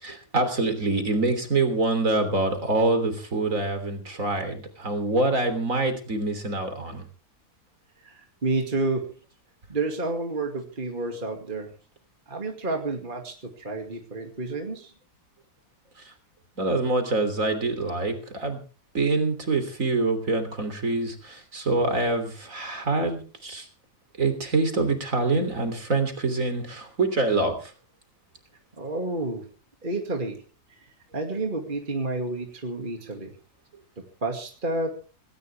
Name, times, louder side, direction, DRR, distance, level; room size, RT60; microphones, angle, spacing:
voice 1, 0.0-7.0 16.6-18.6 18.9-23.7 24.2-27.7, right 3 dB, 50° right, 8 dB, 3.6 m, -25 dB
voice 2, 8.0-9.1 9.7-11.7 12.3-14.9 28.8-29.5 29.8-30.4 30.8-30.9 31.1-33.3 34.2-34.9, right 2 dB, 30° right, 3 dB, 2.4 m, -30 dB
18.5 x 18.0 x 3.5 m, 0.36 s
omnidirectional pair, 1.8 m